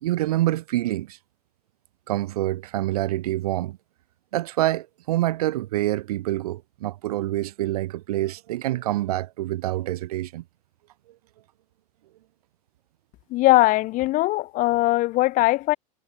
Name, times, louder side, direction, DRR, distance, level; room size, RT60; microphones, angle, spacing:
voice 1, 0.0-1.2 2.1-3.8 4.3-10.4, right 15 dB, 85° right, 0.8 m, -26 dB
voice 2, 13.3-15.8, left 18 dB, 45° left, 0.6 m, -20 dB
supercardioid pair, 110°, 19 cm